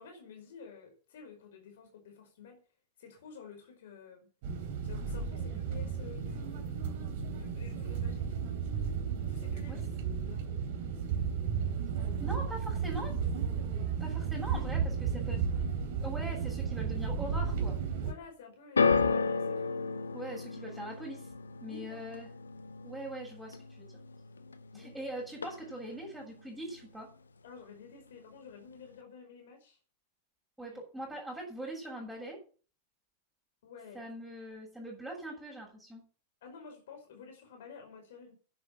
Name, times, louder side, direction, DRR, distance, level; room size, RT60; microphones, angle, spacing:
voice 1, 0.0-2.6 3.0-4.3 4.8-6.8 7.3-8.4 9.3-10.5 18.0-19.8 21.7-22.0 24.7-24.9 27.4-29.8 30.6-30.8 33.6-34.1 36.4-38.3, left 6 dB, 60° left, 5 dB, 4.9 m, -51 dB
sound 1, 4.4-18.1, right 6 dB, 50° right, 3.3 m, -33 dB
voice 2, 12.0-13.1 14.0-15.5 16.0-17.8 20.1-21.3 21.6-22.3 22.8-24.0 24.7-27.1 30.6-32.4 33.9-36.0, right 1 dB, ahead, -5 dB, 7.5 m, -42 dB
sound 2, 18.8-25.0 25.3-26.0 26.7-26.8, left 4 dB, 75° left, 1.0 m, -33 dB
11.0 x 10.5 x 7.5 m, 0.40 s
figure-of-eight pair, 90°, 0 cm